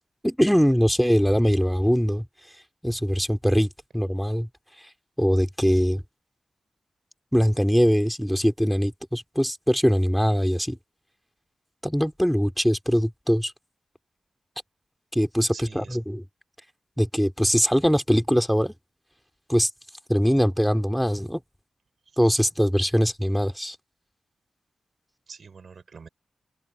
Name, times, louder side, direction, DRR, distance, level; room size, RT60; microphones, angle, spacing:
voice 1, 0.2-2.3 2.8-3.7 3.9-4.5 5.2-6.0 7.3-10.8 11.8-13.5 15.1-16.2 17.0-18.7 19.5-19.7 20.1-21.4 22.2-23.8, equal, ahead, 2.8 m, -22 dB
voice 2, 15.5-16.0 22.1-22.2 25.3-26.1, right 5 dB, 65° right, 5.9 m, -45 dB
open air
cardioid pair, 60°, 0 cm